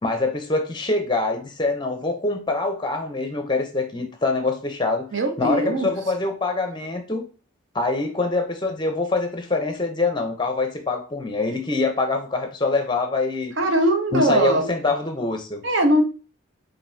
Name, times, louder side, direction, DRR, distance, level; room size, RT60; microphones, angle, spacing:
voice 1, 0.0-5.1 5.4-7.2 7.7-13.5 14.1-15.6, left 3 dB, 20° left, 0.6 m, -24 dB
voice 2, 5.1-5.9 13.6-14.7 15.6-16.0, right 1 dB, 55° right, 0.8 m, -20 dB
5.2 x 2.7 x 2.7 m
head